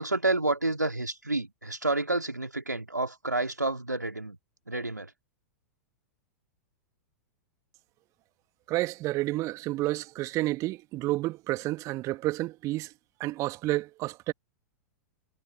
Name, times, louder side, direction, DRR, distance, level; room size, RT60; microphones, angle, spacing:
voice 1, 0.0-4.4 4.7-5.1, right 2 dB, 90° right, 2.8 m, -29 dB
voice 2, 8.7-12.9 13.2-14.3, right 18 dB, 35° right, 1.7 m, -30 dB
figure-of-eight pair, 100°, 9 cm